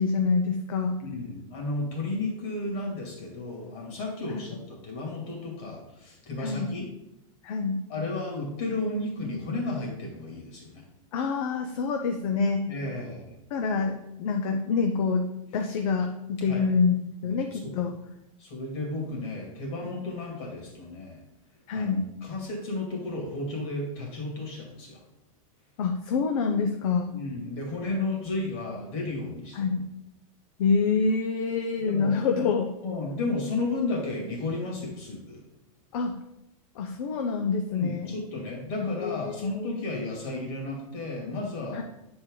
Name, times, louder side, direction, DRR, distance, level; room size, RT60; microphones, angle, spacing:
voice 1, 0.0-1.0 4.3-4.4 6.4-6.7 7.4-7.8 11.1-12.6 13.5-15.2 15.5-17.0 17.2-17.9 21.7-22.0 25.8-27.1 29.5-29.9 30.6-32.7 35.9-36.2 36.8-38.1 38.8-39.8 41.7-41.8, left 5 dB, 70° left, 4 dB, 0.7 m, -26 dB
voice 2, 1.0-6.9 7.9-10.8 12.7-13.3 16.5-16.7 17.2-17.8 18.4-21.2 21.7-25.0 27.1-29.8 31.8-32.1 32.8-35.4 37.7-41.8, left 2 dB, 55° left, -1 dB, 2.5 m, -33 dB
7.4 x 4.4 x 3.8 m, 0.87 s
supercardioid pair, 135°, 18 cm